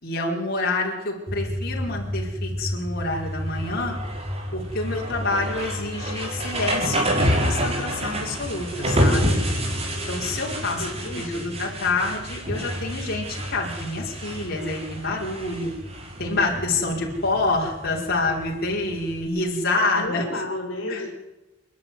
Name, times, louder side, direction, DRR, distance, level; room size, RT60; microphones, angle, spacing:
voice 1, 0.0-4.0 4.5-9.4 10.1-10.9 11.2-15.7 16.2-20.2 20.9-21.0, left 2 dB, 50° left, -2 dB, 5.2 m, -27 dB
sound 1, 1.3-19.2, equal, 30° right, 5.2 m, -28 dB
voice 2, 10.8-11.5 19.9-21.1, left 2 dB, 65° left, 1 dB, 4.8 m, -32 dB
28.5 x 11.5 x 9.7 m, 1.1 s
head